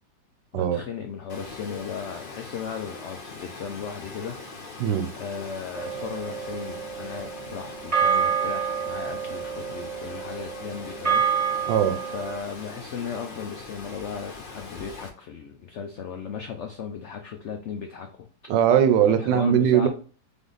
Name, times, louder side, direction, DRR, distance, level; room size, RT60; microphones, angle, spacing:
voice 1, 0.5-4.4 5.2-11.2 12.1-18.3 19.1-19.9, left 6 dB, 85° left, 0.6 m, -36 dB
Water, 1.3-15.1, left 3 dB, 45° left, 0.7 m, -42 dB
voice 2, 4.8-5.1 11.7-12.0 18.5-19.9, right 9 dB, 85° right, 1.3 m, -20 dB
sound 1, 5.7-12.4, right 7 dB, 50° right, 0.4 m, -28 dB
3.8 x 3.5 x 3.8 m
omnidirectional pair, 1.8 m